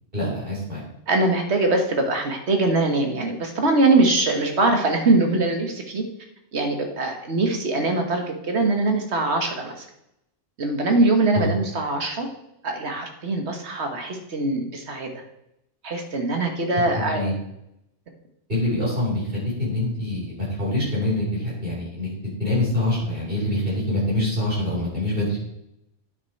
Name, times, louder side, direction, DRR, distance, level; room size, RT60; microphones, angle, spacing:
voice 1, 0.1-0.8 11.3-11.5 17.1-17.3 18.5-25.4, left 1 dB, 50° right, -6 dB, 4.6 m, -25 dB
voice 2, 1.1-6.0 6.5-9.8 10.6-12.3 12.6-15.1 15.8-17.3, right 2 dB, 65° right, 4 dB, 1.6 m, -22 dB
9.6 x 6.4 x 4.5 m, 0.82 s
omnidirectional pair, 1.2 m